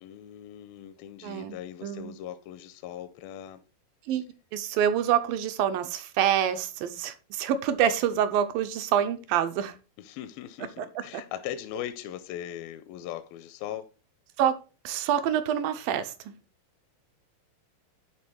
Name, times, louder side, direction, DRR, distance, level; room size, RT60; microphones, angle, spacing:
voice 1, 0.0-3.6 10.0-13.9, left 11 dB, 80° left, 2.3 m, -39 dB
voice 2, 1.2-2.1 4.1-4.3 4.5-9.7 10.8-11.2 14.4-14.6 14.8-16.3, right 9 dB, 80° right, 2.4 m, -27 dB
11.0 x 3.9 x 4.5 m
omnidirectional pair, 4.4 m